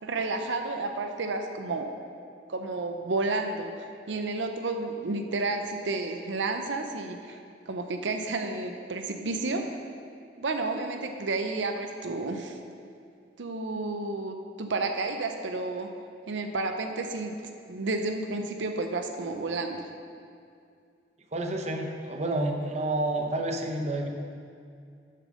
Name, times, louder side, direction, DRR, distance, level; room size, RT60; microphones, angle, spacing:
voice 1, 0.0-1.9 2.5-7.4 7.7-9.6 10.4-12.6 13.4-15.9 16.3-17.3 17.7-19.9, right 3 dB, 85° right, 5 dB, 0.6 m, -31 dB
voice 2, 21.3-24.1, right 2 dB, 40° right, 2 dB, 0.8 m, -29 dB
7.5 x 6.6 x 6.4 m, 2.3 s
head